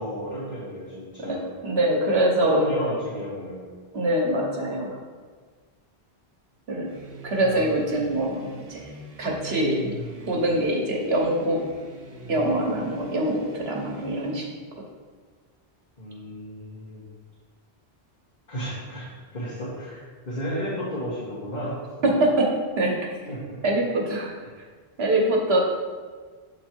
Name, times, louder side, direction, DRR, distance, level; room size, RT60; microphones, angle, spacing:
voice 1, 0.0-1.5 2.4-3.6 7.5-7.6 16.0-17.0 18.5-21.8 23.3-23.4, equal, 45° left, -11 dB, 1.7 m, -32 dB
voice 2, 1.2-2.6 3.9-5.0 6.7-6.9 7.2-8.9 9.2-9.9 10.2-11.6 12.3-14.5 22.0-22.5 22.8-23.0 23.6-24.3 25.0-25.6, right 1 dB, 75° right, -1 dB, 1.4 m, -24 dB
sound 1, 6.9-14.7, right 1 dB, 40° right, 0.7 m, -42 dB
7.3 x 3.8 x 4.5 m, 1.5 s
omnidirectional pair, 1.1 m